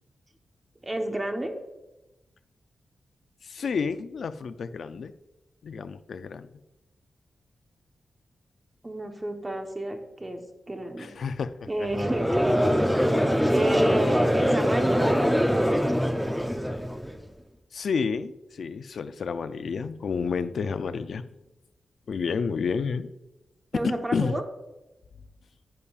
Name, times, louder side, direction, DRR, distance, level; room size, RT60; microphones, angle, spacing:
voice 1, 0.8-1.5 8.8-11.1 11.7-13.1 13.5-15.2 23.7-24.4, right 1 dB, 15° right, 4 dB, 1.0 m, -30 dB
voice 2, 3.4-5.1 5.6-6.5 11.0-11.9 13.9-14.0 17.7-21.2 22.1-23.1 23.8-24.4, left 5 dB, 65° left, 11 dB, 0.4 m, -30 dB
Conversation / Crowd, 11.9-17.2, equal, ahead, 0.5 m, -23 dB
10.5 x 8.3 x 2.4 m, 0.99 s
wide cardioid pair, 140°, 0 cm